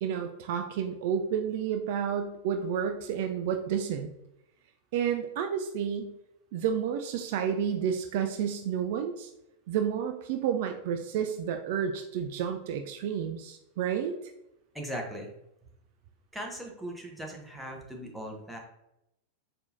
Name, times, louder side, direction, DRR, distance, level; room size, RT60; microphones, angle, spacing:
voice 1, 0.0-4.1 4.9-6.1 6.5-9.3 9.7-14.3, right 8 dB, 50° right, 5 dB, 0.3 m, -30 dB
voice 2, 14.7-15.3 16.3-18.6, equal, 5° right, -1 dB, 0.9 m, -39 dB
4.4 x 3.3 x 2.7 m, 0.85 s
figure-of-eight pair, 90°, 0 cm